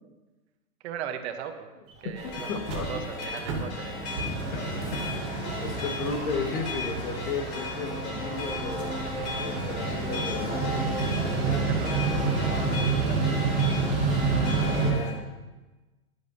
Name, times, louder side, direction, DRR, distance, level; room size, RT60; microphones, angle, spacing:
voice 1, 0.8-1.7 2.0-4.3 11.4-12.8, right 8 dB, 50° right, 7 dB, 1.0 m, -39 dB
Mechanical fan, 1.9-2.0 2.3-2.4 2.6-14.9, right 4 dB, 10° right, 0.3 m, -29 dB
voice 2, 2.2-3.1 4.5-9.1 9.3-11.9 12.2-12.3 12.7-13.4 14.1-15.2, left 4 dB, 75° left, 5 dB, 1.6 m, -36 dB
sound 1, 2.2-15.1, left 2 dB, 35° left, 2.6 m, -36 dB
11.0 x 10.5 x 2.7 m, 1.2 s
hypercardioid pair, 145°, 43 cm